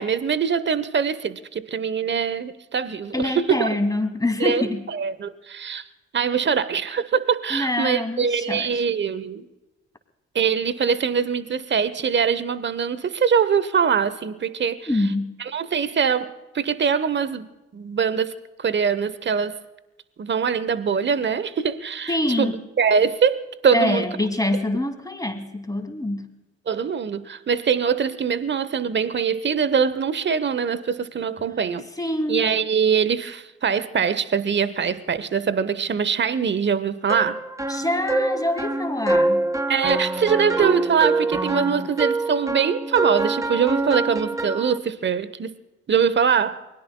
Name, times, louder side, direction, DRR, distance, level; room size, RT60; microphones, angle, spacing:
voice 1, 0.0-3.7 4.4-4.6 4.9-5.8 6.1-9.5 10.3-15.1 15.4-19.6 20.2-24.1 26.7-31.9 32.3-37.4 39.7-45.5 45.9-46.6, right 6 dB, 35° right, 1.0 m, -23 dB
voice 2, 3.1-4.8 7.5-8.8 14.9-15.4 22.1-22.5 23.7-26.3 32.0-32.4 37.7-39.5, left 1 dB, 10° left, 2.6 m, -25 dB
sound 1, 37.1-44.8, right 2 dB, 10° right, 0.8 m, -25 dB
29.5 x 21.0 x 2.3 m
hypercardioid pair, 45°, 31 cm